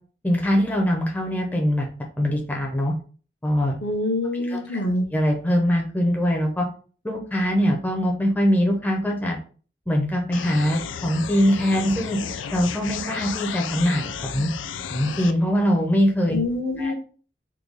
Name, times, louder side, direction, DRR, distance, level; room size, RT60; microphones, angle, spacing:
voice 1, 0.2-1.9 2.2-2.9 3.4-3.8 4.5-4.8 5.1-6.7 7.0-9.4 9.9-12.2 12.5-14.5 14.9-16.4 16.8-16.9, equal, 10° left, 0 dB, 0.5 m, -22 dB
voice 2, 3.8-5.1 16.3-16.9, left 2 dB, 65° left, 3 dB, 0.8 m, -25 dB
sound 1, 10.3-15.3, left 7 dB, 85° left, 0.3 m, -33 dB
3.6 x 2.3 x 3.3 m, 0.40 s
head